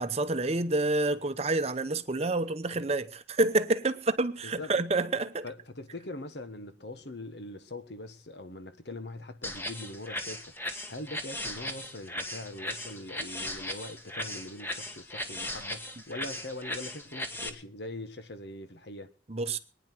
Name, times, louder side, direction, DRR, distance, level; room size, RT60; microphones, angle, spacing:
voice 1, 0.0-5.4 19.3-19.6, right 2 dB, 35° right, 0.8 m, -28 dB
voice 2, 5.4-19.1, left 2 dB, 65° left, 1.4 m, -42 dB
sound 1, 9.4-17.5, left 1 dB, 10° left, 1.5 m, -37 dB
23.0 x 9.9 x 4.5 m
head